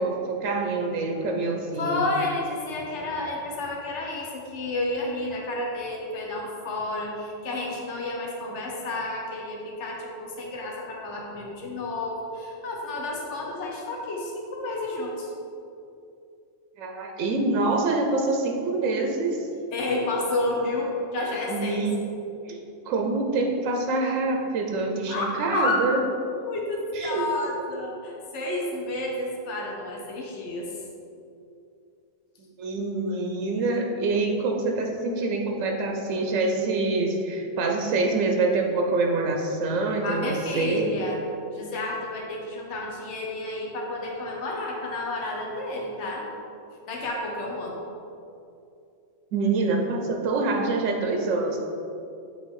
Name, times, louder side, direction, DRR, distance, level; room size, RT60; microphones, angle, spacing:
voice 1, 0.0-2.1 16.8-19.5 21.5-22.1 22.4-22.6 22.9-26.0 26.9-27.3 32.6-40.9 49.3-51.6, right 3 dB, 85° right, 2 dB, 1.0 m, -26 dB
voice 2, 1.8-15.3 19.7-21.9 25.1-25.8 26.4-30.7 40.0-41.2 41.5-46.3 46.9-47.8, left 2 dB, 65° left, -2 dB, 1.2 m, -30 dB
7.2 x 3.1 x 4.7 m, 2.6 s
omnidirectional pair, 1.3 m